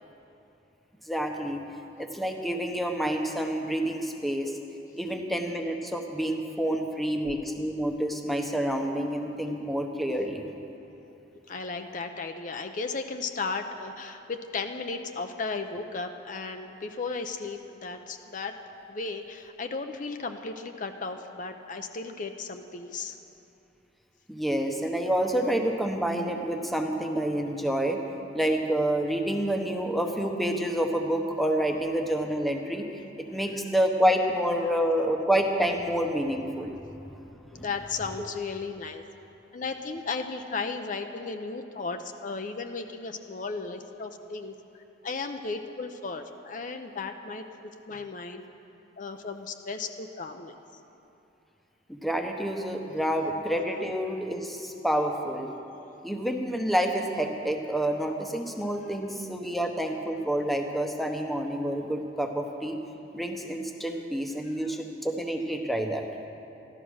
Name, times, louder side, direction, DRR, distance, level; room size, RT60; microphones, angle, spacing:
voice 1, 1.1-1.6 2.0-4.6 5.0-10.4 24.3-28.0 28.3-32.8 33.2-36.7 37.5-37.6 38.2-38.3 51.9-55.5 56.0-62.8 63.1-66.0, right 1 dB, ahead, 3 dB, 0.9 m, -28 dB
voice 2, 11.5-18.6 18.9-23.2 37.5-39.0 39.5-44.5 45.0-48.4 49.0-50.5 64.4-64.8, left 4 dB, 45° left, 5 dB, 0.6 m, -35 dB
14.5 x 12.0 x 6.3 m, 2.9 s
head